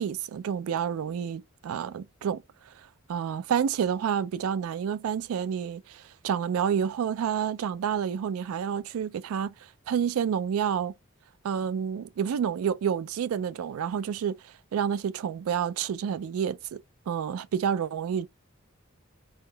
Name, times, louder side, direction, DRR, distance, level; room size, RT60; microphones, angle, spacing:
voice 1, 0.0-9.5 9.9-10.9 11.4-18.3, right 8 dB, 90° right, 0.3 m, -29 dB
4.2 x 3.5 x 2.2 m
head